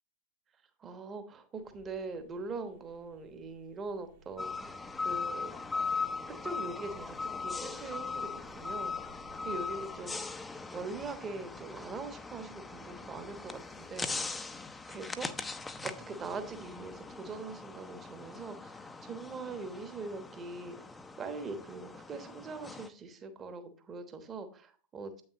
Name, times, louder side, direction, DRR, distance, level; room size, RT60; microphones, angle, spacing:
voice 1, 0.8-5.5 6.3-8.9 9.4-10.3 10.7-14.1 14.9-15.5 15.8-20.7 21.2-25.2, right 3 dB, 25° right, 9 dB, 1.1 m, -42 dB
sound 1, 1.5-10.0, right 3 dB, 55° right, 1.4 m, -60 dB
sound 2, 4.4-22.9, left 4 dB, 10° left, 0.5 m, -40 dB
8.5 x 6.4 x 3.0 m, 0.41 s
figure-of-eight pair, 90°, 0 cm